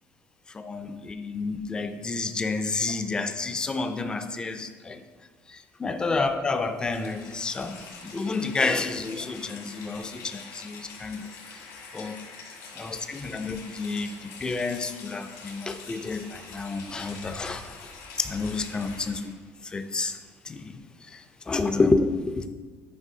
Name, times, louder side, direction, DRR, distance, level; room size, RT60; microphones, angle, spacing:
voice 1, 0.5-5.0 5.5-7.8 8.0-11.6 11.9-12.2 12.7-17.9 18.2-19.3 19.6-20.2 20.4-22.5, left 3 dB, 15° left, 9 dB, 0.3 m, -30 dB
Rain, 6.8-19.4, left 4 dB, 80° left, 1.8 m, -45 dB
9.7 x 4.6 x 2.7 m, 1.4 s
cardioid pair, 165°, 6 cm